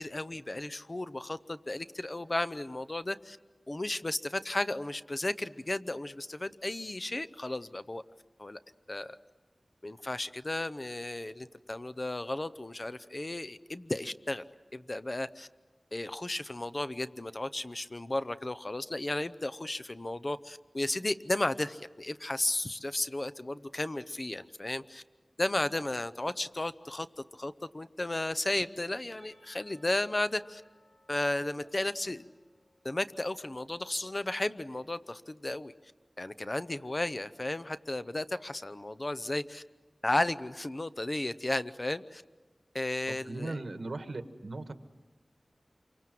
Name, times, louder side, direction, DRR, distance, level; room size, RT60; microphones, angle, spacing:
voice 1, 0.0-3.4 3.7-8.0 8.4-8.6 8.9-9.2 9.8-14.4 14.7-15.5 15.9-25.0 25.4-30.6 31.1-32.2 32.8-35.7 36.2-39.6 40.0-42.2 42.7-43.6, left 2 dB, 35° left, 13 dB, 0.7 m, -34 dB
Percussion, 29.2-34.0, equal, 10° left, 5.6 m, -66 dB
voice 2, 43.3-44.7, right 2 dB, 75° right, 8 dB, 1.6 m, -38 dB
28.0 x 24.5 x 7.7 m, 1.3 s
wide cardioid pair, 75°, 0 cm